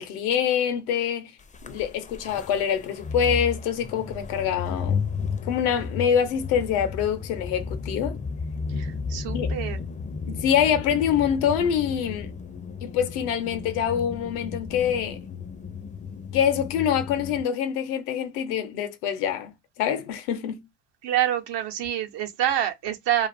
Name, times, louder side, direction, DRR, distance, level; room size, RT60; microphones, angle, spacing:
voice 1, 0.0-1.3 1.6-5.1 5.4-8.2 9.3-9.5 10.3-12.3 12.8-15.3 16.3-20.7, left 8 dB, 85° left, 0.7 m, -25 dB
sound 1, 1.5-17.4, left 5 dB, 20° left, 0.4 m, -33 dB
voice 2, 8.7-9.8 21.0-23.3, right 11 dB, 70° right, 0.9 m, -27 dB
2.5 x 2.4 x 2.6 m
hypercardioid pair, 65°, 44 cm